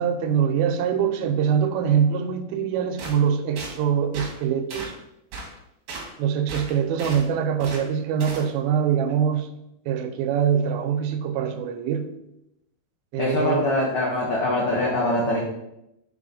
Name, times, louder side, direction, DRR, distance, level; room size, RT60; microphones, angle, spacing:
voice 1, 0.0-4.9 6.2-9.6 9.9-12.1 13.1-13.6, right 8 dB, 90° right, 9 dB, 2.5 m, -23 dB
sound 1, 3.0-3.2 3.6-3.7 4.1-4.3 4.7-4.9 5.3-5.5 5.9-6.1 6.5-7.2 7.6-7.8 8.2-8.5, right 3 dB, 60° right, 1.6 m, -35 dB
voice 2, 13.2-15.4, left 1 dB, 85° left, -5 dB, 1.2 m, -23 dB
6.5 x 3.9 x 3.8 m, 0.84 s
omnidirectional pair, 4.2 m